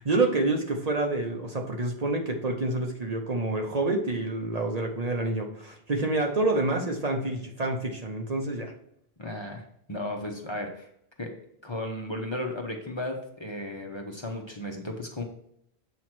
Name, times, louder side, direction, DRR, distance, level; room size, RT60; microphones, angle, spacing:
voice 1, 0.0-8.7, right 2 dB, 45° right, 3 dB, 0.8 m, -28 dB
voice 2, 9.2-9.6 9.9-10.9 11.2-11.3 11.6-15.2, left 1 dB, 30° left, 2 dB, 0.9 m, -34 dB
7.6 x 3.1 x 5.9 m, 0.72 s
omnidirectional pair, 1.0 m